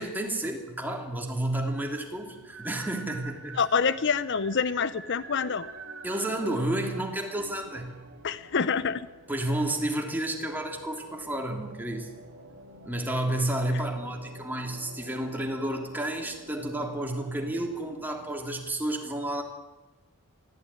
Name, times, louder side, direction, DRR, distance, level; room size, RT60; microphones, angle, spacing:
voice 1, 0.0-3.6 6.0-8.0 9.3-12.1 12.9-19.4, right 1 dB, 10° right, 2 dB, 3.0 m, -31 dB
Whistle Music, 1.5-18.6, right 3 dB, 50° right, 2.8 m, -47 dB
voice 2, 3.6-5.7 8.2-9.1, left 6 dB, 55° left, 16 dB, 0.6 m, -26 dB
22.5 x 15.0 x 10.0 m, 1.1 s
head